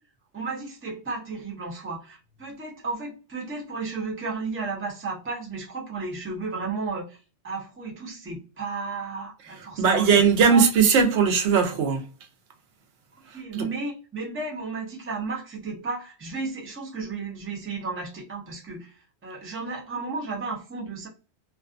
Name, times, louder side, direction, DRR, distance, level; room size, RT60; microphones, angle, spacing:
voice 1, 0.3-7.2 7.4-10.6 13.3-21.1, right 4 dB, 15° right, 0.5 m, -33 dB
voice 2, 9.8-12.0 13.5-13.7, right 6 dB, 80° right, 0.9 m, -19 dB
2.4 x 2.3 x 2.4 m
omnidirectional pair, 1.1 m